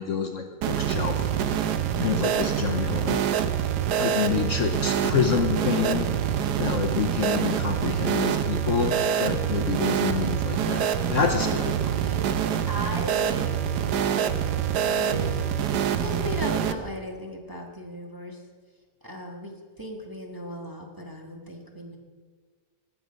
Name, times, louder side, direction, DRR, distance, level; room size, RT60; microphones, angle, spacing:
voice 1, 0.0-1.7 2.0-3.2 4.0-6.1 6.6-11.7, left 6 dB, 55° left, 4 dB, 1.1 m, -28 dB
sound 1, 0.6-16.7, right 9 dB, 80° right, 1.3 m, -26 dB
voice 2, 5.3-5.7 10.0-10.4 11.8-14.3 15.0-15.4 16.0-18.4 19.0-22.0, equal, 15° right, 0 dB, 1.3 m, -38 dB
19.5 x 7.8 x 5.2 m, 1.5 s
omnidirectional pair, 1.8 m